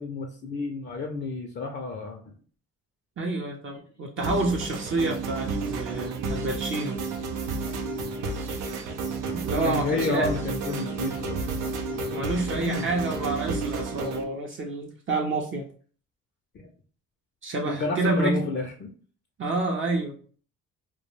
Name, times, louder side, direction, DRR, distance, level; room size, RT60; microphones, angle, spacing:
voice 1, 0.0-2.2 9.6-11.4 12.5-12.9 16.5-16.7 17.7-18.9, left 3 dB, 35° left, 2 dB, 0.4 m, -30 dB
voice 2, 3.2-7.0 9.3-10.3 12.1-15.7 17.4-18.5 19.4-20.2, right 2 dB, 40° right, 0 dB, 0.5 m, -28 dB
sound 1, 4.2-14.2, right 3 dB, 90° right, 0.5 m, -31 dB
2.2 x 2.1 x 3.0 m, 0.43 s
cardioid pair, 90°, 30 cm